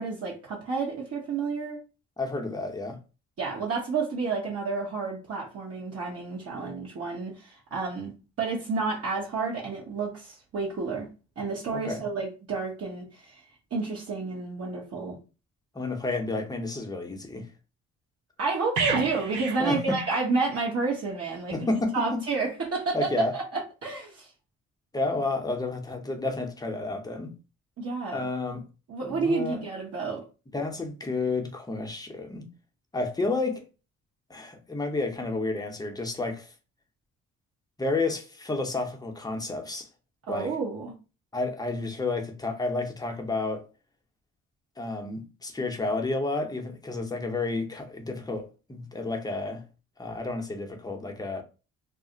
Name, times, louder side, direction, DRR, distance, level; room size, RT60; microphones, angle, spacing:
voice 1, 0.0-1.8 3.4-8.1 8.4-11.1 11.4-13.4 13.7-15.2 18.4-21.6 21.9-24.3 27.8-28.3 28.9-30.2 40.2-40.9, right 4 dB, 50° right, 0.9 m, -30 dB
voice 2, 2.2-3.0 11.7-12.0 15.7-17.5 19.6-20.0 21.5-22.2 22.9-23.3 24.9-27.3 28.1-28.7 29.0-29.6 30.5-32.5 32.9-33.7 34.3-36.5 37.8-39.9 40.3-40.5 41.3-43.7 44.8-49.6 50.0-51.4, left 3 dB, 15° left, 0.6 m, -31 dB
sound 1, 18.8-20.7 21.0-21.2, right 5 dB, 80° right, 0.6 m, -32 dB
2.4 x 2.0 x 3.7 m
cardioid pair, 90°, 30 cm